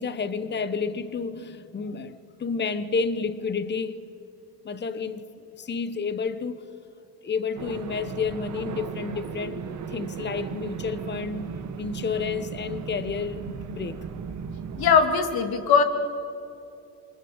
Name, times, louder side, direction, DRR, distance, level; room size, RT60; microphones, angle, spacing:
voice 1, 0.0-4.0 4.6-5.3 5.6-6.6 7.2-11.5 11.8-14.0, left 5 dB, 25° left, 1.2 m, -30 dB
sound 1, 7.6-15.0, right 6 dB, 45° right, 2.0 m, -36 dB
voice 2, 14.8-15.8, left 6 dB, 60° left, 3.0 m, -20 dB
28.0 x 24.0 x 8.1 m
cardioid pair, 115°, 42 cm